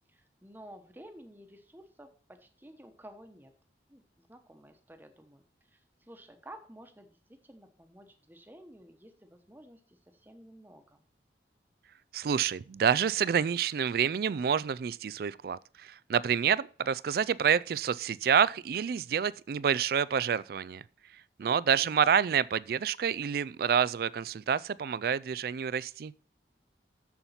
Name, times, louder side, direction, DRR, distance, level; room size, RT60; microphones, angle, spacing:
voice 1, 0.1-3.5 3.9-5.4 5.7-11.0 21.4-22.0, right 1 dB, 10° right, 1.0 m, -52 dB
voice 2, 12.1-20.8 21.4-26.1, right 7 dB, 55° right, 0.3 m, -28 dB
7.2 x 7.0 x 5.7 m
head